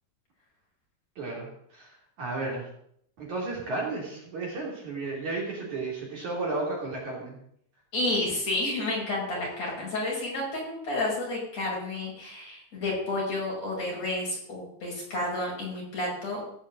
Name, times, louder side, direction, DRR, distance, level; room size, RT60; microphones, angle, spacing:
voice 1, 1.2-2.7 3.2-7.4, right 3 dB, 50° right, -2 dB, 4.6 m, -33 dB
voice 2, 7.9-16.6, left 2 dB, 40° left, -4 dB, 7.1 m, -31 dB
17.0 x 6.6 x 7.8 m, 0.69 s
omnidirectional pair, 4.6 m